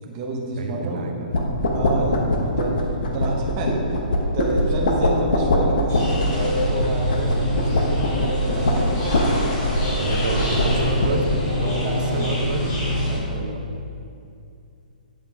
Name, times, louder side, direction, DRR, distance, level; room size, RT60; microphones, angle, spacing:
voice 1, 0.0-1.3 1.7-2.7 3.1-9.0 9.4-9.5 11.8-12.4 13.1-13.6, right 2 dB, 20° right, -2 dB, 0.9 m, -30 dB
voice 2, 0.6-1.3 10.0-12.8 13.3-13.6, right 4 dB, 55° right, 3 dB, 0.8 m, -29 dB
sound 1, 1.3-11.4, left 1 dB, 65° left, 1.1 m, -23 dB
sound 2, 5.9-13.2, left 1 dB, 30° left, 2.0 m, -25 dB
8.7 x 5.6 x 4.7 m, 2.5 s
hypercardioid pair, 175°, 5 cm